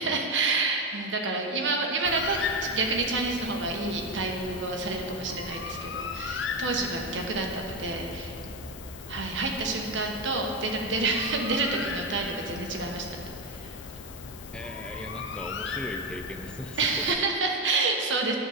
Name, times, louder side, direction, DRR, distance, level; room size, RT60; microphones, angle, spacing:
voice 1, 0.0-8.3 9.1-13.2 13.5-13.7 16.8-18.4, right 3 dB, 80° right, 2 dB, 1.0 m, -28 dB
Bird, 2.0-17.1, left 5 dB, 80° left, 0.5 m, -37 dB
sound 1, 7.1-11.2 11.6-11.7, equal, 55° left, 1.2 m, -50 dB
voice 2, 14.5-17.2, left 1 dB, 5° left, 5 dB, 0.4 m, -39 dB
11.0 x 3.9 x 6.4 m, 2.6 s
head